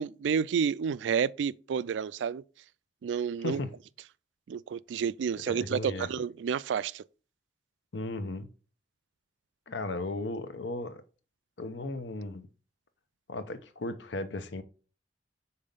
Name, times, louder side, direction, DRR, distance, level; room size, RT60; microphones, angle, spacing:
voice 1, 0.0-2.4 3.0-3.6 4.5-7.0, right 7 dB, 80° right, 0.3 m, -30 dB
voice 2, 5.5-6.1 7.9-8.5 9.7-11.0 11.6-12.5 13.3-14.6, left 2 dB, 80° left, 0.8 m, -35 dB
5.4 x 4.2 x 5.2 m
head